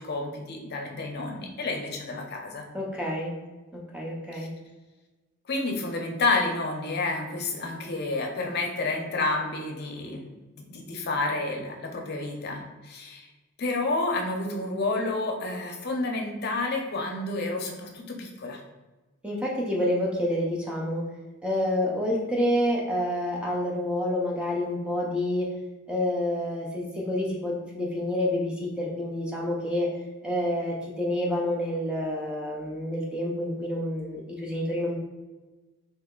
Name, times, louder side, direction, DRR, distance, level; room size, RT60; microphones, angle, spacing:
voice 1, 0.0-2.6 4.3-4.5 5.5-13.3 13.6-18.6, left 3 dB, 50° left, 1 dB, 0.6 m, -30 dB
voice 2, 2.7-3.4 3.7-4.5 19.2-21.1 21.4-25.6 25.9-29.9 30.2-35.0, left 1 dB, 5° right, -3 dB, 0.5 m, -28 dB
3.3 x 2.8 x 3.7 m, 1.2 s
head